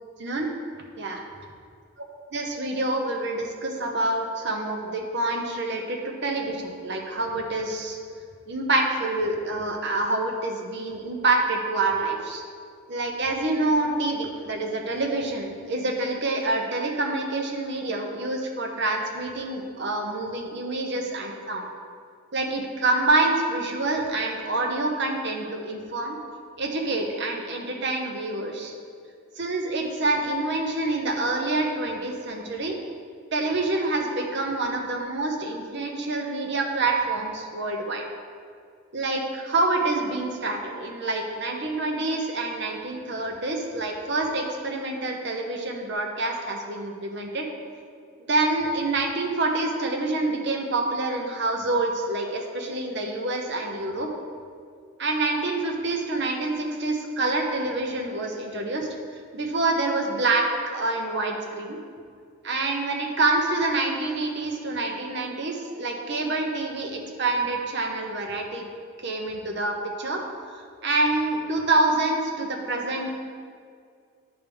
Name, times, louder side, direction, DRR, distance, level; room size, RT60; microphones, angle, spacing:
voice 1, 2.3-8.0 8.5-12.4 12.9-21.6 22.3-26.2 26.6-28.7 29.4-32.8 33.3-38.0 38.9-47.5 48.3-54.1 55.0-58.9 59.3-61.8 62.4-68.7 69.0-70.2 70.8-73.3, right 2 dB, 50° right, 2 dB, 0.8 m, -27 dB
9.7 x 3.5 x 5.3 m, 2.2 s
head